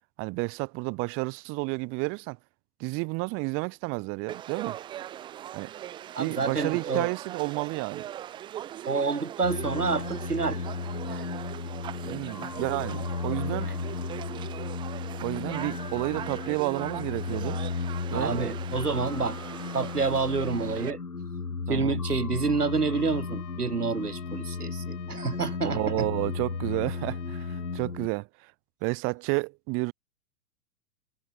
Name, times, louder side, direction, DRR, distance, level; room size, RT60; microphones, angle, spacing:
voice 1, 0.2-2.4 2.8-4.8 5.5-5.7 6.2-8.0 12.0-13.7 15.2-17.6 18.1-18.3 21.7-22.0 25.6-28.5 28.8-29.9, right 28 dB, 30° right, 1.3 m, -31 dB
Conversation / Crowd, 4.3-20.9, right 11 dB, 10° right, 0.5 m, -40 dB
voice 2, 6.1-7.1 8.9-10.6 11.0-11.2 13.6-13.9 18.1-19.4 19.7-21.0 21.7-26.1, right 4 dB, 85° right, 2.1 m, -28 dB
sound 1, 9.4-28.1, left 4 dB, 80° left, 3.2 m, -34 dB
Trumpet, 22.6-27.9, left 30 dB, 35° left, 3.2 m, -51 dB
figure-of-eight pair, 105°, 45 cm